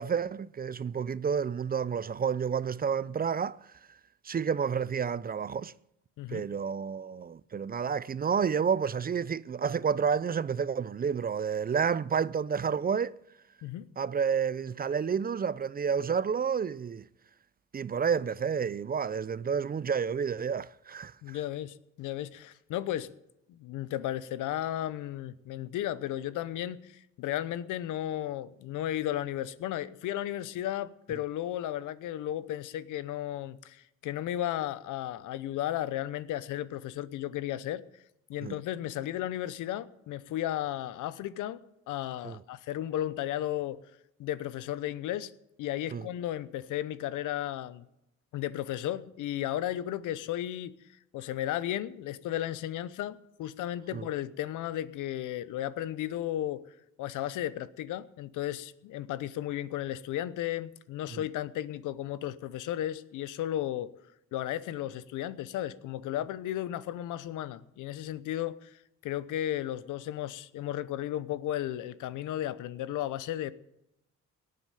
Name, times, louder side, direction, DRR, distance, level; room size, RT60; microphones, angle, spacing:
voice 1, 0.0-3.6 4.2-5.7 6.3-13.2 14.0-17.0 17.7-21.4 38.4-38.5 42.2-42.4 45.9-46.1 53.9-54.1, right 6 dB, 30° right, 0.5 m, -30 dB
voice 2, 21.2-23.1 23.5-37.8 38.3-41.6 41.9-43.8 44.2-45.3 45.6-47.9 48.3-50.8 51.1-56.6 57.0-63.9 64.3-73.5, left 12 dB, 90° left, 0.9 m, -34 dB
18.0 x 7.7 x 9.2 m
cardioid pair, 90°, 30 cm